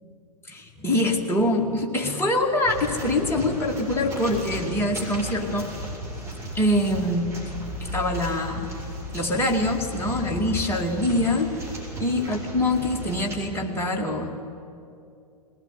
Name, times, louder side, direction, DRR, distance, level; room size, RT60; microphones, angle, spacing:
voice 1, 0.5-5.7 6.5-7.3 7.8-8.7 9.1-11.5 12.0-14.3, left 1 dB, 10° left, 0 dB, 2.4 m, -24 dB
sound 1, 2.6-13.4, left 1 dB, 15° right, 6.0 m, -35 dB
21.5 x 19.0 x 9.7 m, 2.6 s
figure-of-eight pair, 105°, 20 cm